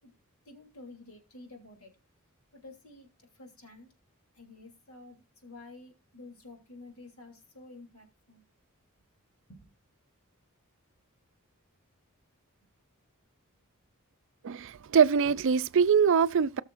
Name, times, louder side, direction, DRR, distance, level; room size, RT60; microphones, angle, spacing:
voice 1, 0.4-1.9 2.5-3.9 4.3-8.4 9.5-9.7, left 2 dB, 75° left, 3.0 m, -50 dB
voice 2, 14.4-16.6, right 6 dB, 60° right, 0.4 m, -23 dB
18.5 x 6.4 x 2.5 m
head